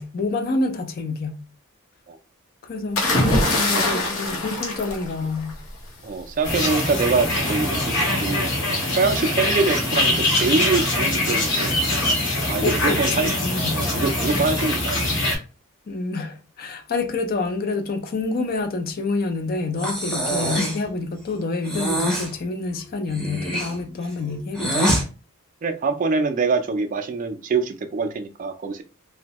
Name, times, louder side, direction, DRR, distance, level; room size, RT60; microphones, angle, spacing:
voice 1, 0.0-1.4 2.6-3.1 3.6-5.6 12.6-13.9 15.9-24.9, left 3 dB, 45° left, 0.4 m, -27 dB
sound 1, 3.0-5.7 6.9-7.2, left 2 dB, 85° left, 0.9 m, -23 dB
voice 2, 3.2-3.9 6.0-7.9 8.2-8.5 8.9-12.1 12.5-13.3 13.7-15.1 20.4-20.6 25.6-28.8, right 4 dB, 40° right, 0.3 m, -24 dB
sound 2, 6.4-15.3, left 1 dB, 60° left, 1.0 m, -23 dB
Breathing, 19.8-20.8 21.6-22.3 23.1-25.0, equal, 5° left, 0.6 m, -24 dB
2.6 x 2.1 x 2.9 m
head